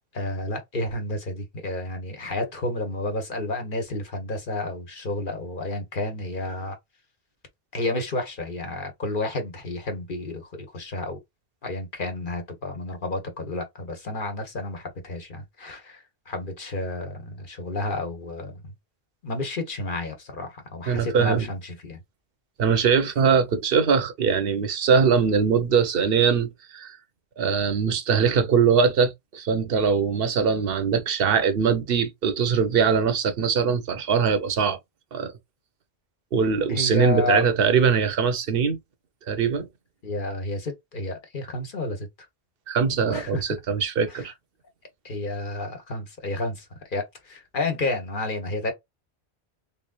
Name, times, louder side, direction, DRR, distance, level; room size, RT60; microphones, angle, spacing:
voice 1, 0.1-6.8 7.7-11.2 11.6-18.7 19.2-22.0 36.7-37.4 40.0-42.1 43.0-43.6 44.1-44.3 45.0-48.7, left 2 dB, 55° left, 1.2 m, -31 dB
voice 2, 20.9-21.5 22.6-27.0 27.4-34.8 35.1-35.3 36.3-38.8 39.3-39.7 42.7-44.3, right 6 dB, 65° right, 0.9 m, -22 dB
3.6 x 3.3 x 2.4 m
omnidirectional pair, 1.1 m